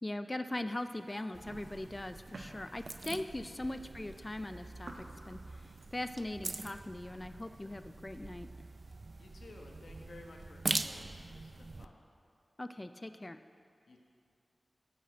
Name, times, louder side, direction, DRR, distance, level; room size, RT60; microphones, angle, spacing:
voice 1, 0.0-8.5 12.6-13.4, left 1 dB, 25° left, 10 dB, 0.3 m, -40 dB
sound 1, 0.7-6.2, right 2 dB, 85° right, 1.1 m, -54 dB
sound 2, 1.3-11.9, right 3 dB, 50° right, 0.4 m, -43 dB
voice 2, 9.2-12.0 13.9-14.0, left 2 dB, 85° left, 1 dB, 1.1 m, -55 dB
10.0 x 6.6 x 7.8 m, 2.5 s
wide cardioid pair, 75°, 0 cm